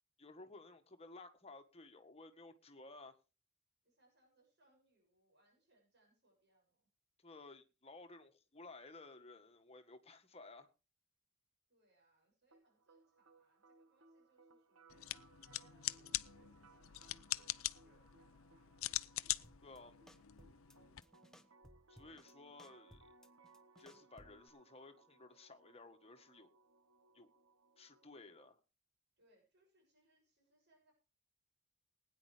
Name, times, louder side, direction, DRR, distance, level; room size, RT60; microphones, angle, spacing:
voice 1, 0.2-3.2 7.2-10.7 19.6-20.0 21.9-23.1 23.8-26.5 27.1-27.3 27.8-28.6, left 3 dB, 30° left, 1.6 m, -56 dB
voice 2, 3.8-6.9 11.7-15.1 15.4-19.0 20.8-21.2 29.2-30.9, right 2 dB, 55° right, 7.1 m, -75 dB
sound 1, 12.5-28.5, right 3 dB, 80° right, 1.6 m, -67 dB
sound 2, 14.9-21.0, left 15 dB, 70° left, 0.5 m, -43 dB
sound 3, 19.4-19.8 20.1-20.8 21.0-22.3 22.6-24.5, equal, ahead, 1.0 m, -62 dB
20.0 x 9.8 x 3.4 m
head